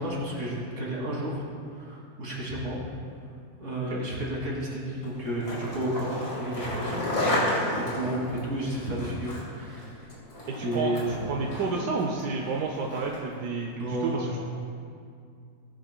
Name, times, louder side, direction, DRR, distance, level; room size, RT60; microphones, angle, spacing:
voice 1, 0.0-1.4 1.7-2.8 3.6-10.1 10.6-11.0 13.8-14.3, right 1 dB, 50° right, -6 dB, 3.0 m, -32 dB
Skateboard, 5.0-13.4, left 1 dB, 80° left, 3.0 m, -33 dB
voice 2, 10.5-14.4, right 4 dB, 80° right, 0 dB, 1.4 m, -30 dB
19.0 x 9.8 x 2.3 m, 2.3 s
omnidirectional pair, 1.7 m